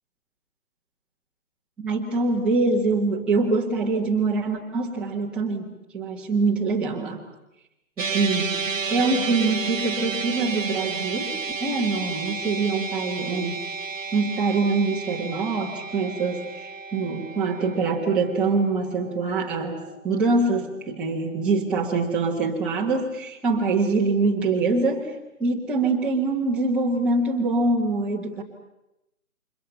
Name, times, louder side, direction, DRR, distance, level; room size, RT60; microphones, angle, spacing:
voice 1, 1.8-7.3 8.0-13.6 14.1-25.1 25.4-28.4, right 3 dB, ahead, -5 dB, 1.4 m, -24 dB
sound 1, 8.0-20.4, right 4 dB, 60° right, 1.1 m, -32 dB
29.5 x 27.0 x 5.6 m, 0.90 s
figure-of-eight pair, 150°, 45 cm